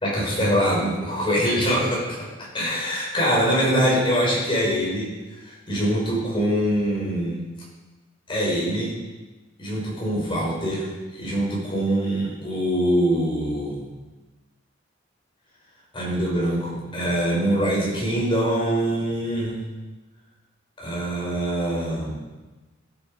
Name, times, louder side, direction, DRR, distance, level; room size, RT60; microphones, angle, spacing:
voice 1, 0.0-2.3 2.5-5.1 5.5-7.4 8.3-8.9 9.6-13.9 15.9-19.6 20.8-22.1, equal, 25° left, -5 dB, 5.7 m, -24 dB
15.5 x 11.5 x 5.1 m, 1.2 s
head